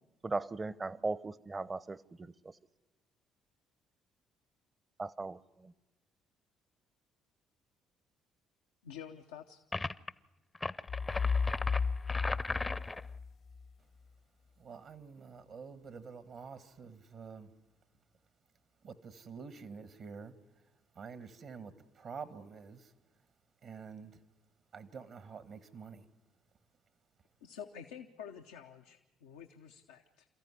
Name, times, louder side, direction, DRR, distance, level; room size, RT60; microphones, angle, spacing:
voice 1, 0.2-2.3 5.0-5.7, right 3 dB, 30° right, 0.8 m, -38 dB
voice 2, 8.8-9.6 27.4-30.3, left 8 dB, 90° left, 0.8 m, -49 dB
sound 1, 9.7-10.1 10.5-13.1, left 3 dB, 25° left, 0.7 m, -37 dB
sound 2, 10.9-13.7, left 5 dB, 60° left, 1.0 m, -33 dB
voice 3, 14.6-17.5 18.8-20.3 20.9-22.9 23.6-24.2 24.7-26.0, right 5 dB, 60° right, 1.5 m, -48 dB
27.0 x 14.0 x 9.7 m
hypercardioid pair, 55°, 0 cm